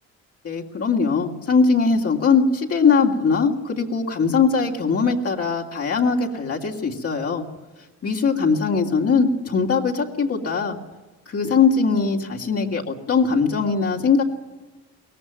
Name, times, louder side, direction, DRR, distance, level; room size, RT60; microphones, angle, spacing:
voice 1, 0.4-7.4 8.0-10.8 11.3-14.2, left 5 dB, 50° left, -1 dB, 2.9 m, -21 dB
23.0 x 18.0 x 9.2 m, 1.1 s
cardioid pair, 90°, 30 cm